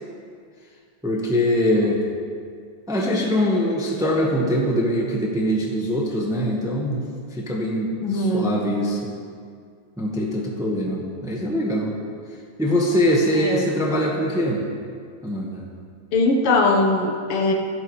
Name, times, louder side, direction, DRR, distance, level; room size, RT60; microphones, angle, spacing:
voice 1, 1.0-2.0 2.9-7.0 7.3-9.1 10.0-11.9 12.6-14.7 15.2-15.6, equal, ahead, -2 dB, 1.1 m, -23 dB
voice 2, 8.0-8.6 13.4-13.7 16.1-17.5, left 2 dB, 80° left, 2 dB, 2.2 m, -20 dB
24.5 x 8.3 x 3.3 m, 2.2 s
omnidirectional pair, 2.4 m